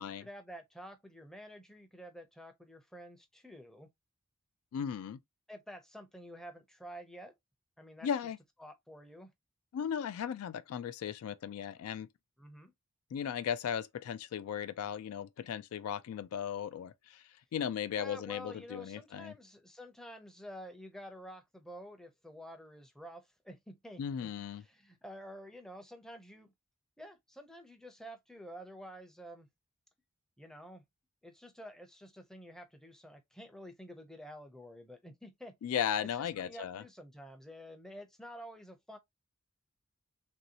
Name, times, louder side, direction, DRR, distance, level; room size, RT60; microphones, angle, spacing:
voice 1, 0.0-3.9 5.5-7.3 7.8-8.1 8.6-9.3 12.4-12.7 18.0-24.3 24.6-26.5 27.0-29.5 30.4-30.8 31.2-35.5 36.0-39.0, equal, ahead, 0.5 m, -50 dB
voice 2, 4.7-5.2 8.0-8.4 9.7-12.1 13.1-17.2 17.5-19.3 24.0-24.6 35.6-36.8, left 8 dB, 85° left, 0.3 m, -36 dB
3.0 x 2.6 x 2.8 m
head